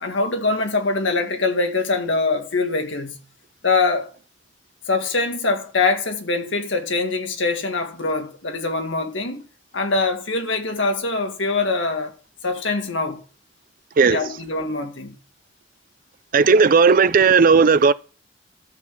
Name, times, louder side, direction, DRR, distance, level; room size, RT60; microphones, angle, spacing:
voice 1, 0.0-3.2 3.6-4.1 4.9-9.4 9.7-12.1 12.4-13.2 14.1-15.1, left 3 dB, 80° left, 2.0 m, -23 dB
voice 2, 16.3-17.9, right 5 dB, 50° right, 0.5 m, -14 dB
13.5 x 6.1 x 7.1 m
head